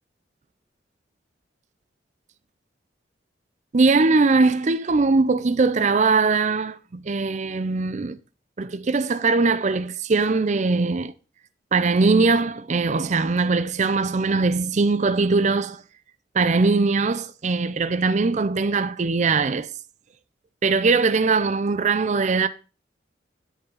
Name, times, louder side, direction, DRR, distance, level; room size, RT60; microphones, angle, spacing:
voice 1, 3.7-8.2 8.6-11.1 11.7-15.8 16.3-19.7 20.6-22.5, right 4 dB, 40° right, 0.5 m, -21 dB
10.5 x 5.4 x 5.4 m
head